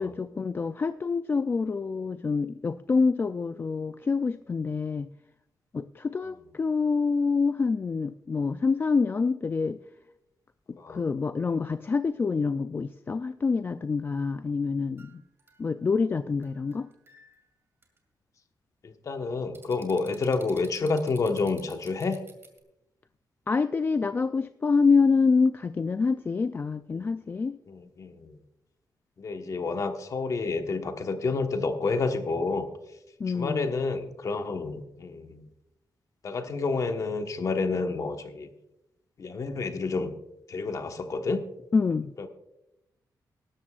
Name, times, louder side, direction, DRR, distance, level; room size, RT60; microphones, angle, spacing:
voice 1, 0.0-5.1 5.7-9.8 10.7-15.2 15.6-16.9 23.5-27.6 33.2-33.7 41.7-42.1, left 4 dB, 30° left, 11 dB, 0.3 m, -26 dB
sound 1, 15.0-16.0 16.4-17.5 17.8-18.0 19.5-22.6, right 3 dB, 35° right, 2.3 m, -53 dB
voice 2, 18.8-22.2 26.9-27.0 27.7-28.4 29.2-32.7 33.3-35.4 36.2-38.5 39.2-40.1 40.5-41.4 42.2-42.3, left 3 dB, 50° left, 6 dB, 1.2 m, -29 dB
18.5 x 12.5 x 2.4 m, 0.88 s
wide cardioid pair, 145°, 7 cm